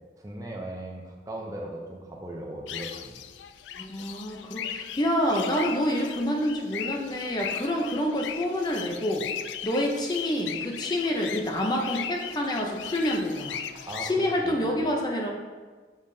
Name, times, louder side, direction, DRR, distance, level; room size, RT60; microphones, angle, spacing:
voice 1, 0.1-3.2 13.7-14.8, right 1 dB, 20° right, 0 dB, 0.5 m, -38 dB
sound 1, 2.7-14.1, left 9 dB, 90° left, 0.3 m, -38 dB
voice 2, 3.8-9.3 9.6-13.6 14.0-15.3, left 1 dB, 25° left, 0 dB, 0.6 m, -27 dB
7.4 x 5.0 x 2.7 m, 1.4 s
head